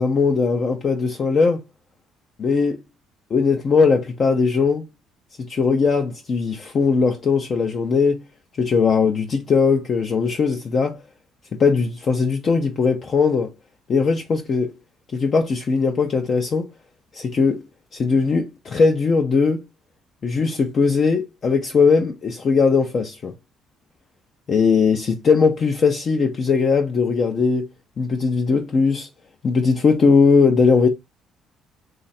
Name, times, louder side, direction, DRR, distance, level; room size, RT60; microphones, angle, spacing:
voice 1, 0.0-1.6 2.4-2.8 3.3-4.8 5.4-8.2 8.6-11.0 11.5-13.5 13.9-14.7 15.1-16.7 17.1-17.6 17.9-19.6 20.2-23.3 24.5-27.7 28.0-29.1 29.4-30.9, left 5 dB, 40° left, 0.5 m, -19 dB
3.1 x 2.4 x 4.1 m
cardioid pair, 130°, 0 cm